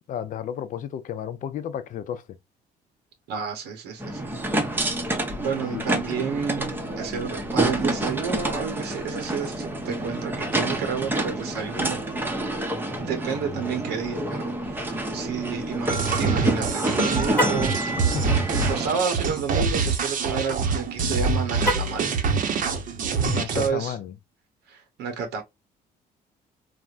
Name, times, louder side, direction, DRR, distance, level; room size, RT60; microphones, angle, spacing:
voice 1, 0.1-2.4 5.7-6.2 18.1-18.3 23.2-24.1, left 9 dB, 50° left, 0.5 m, -32 dB
voice 2, 3.3-4.4 5.4-12.0 13.0-17.7 18.6-22.1 22.8-22.9 23.4-23.9 24.7-25.4, right 6 dB, 85° right, 0.8 m, -30 dB
sound 1, 4.0-18.9, right 1 dB, 10° right, 0.6 m, -28 dB
sound 2, 15.9-23.7, right 5 dB, 50° right, 0.7 m, -25 dB
Car, 17.3-17.7 21.6-22.1, equal, 10° left, 1.0 m, -26 dB
3.3 x 2.1 x 2.4 m
cardioid pair, 110°, 17 cm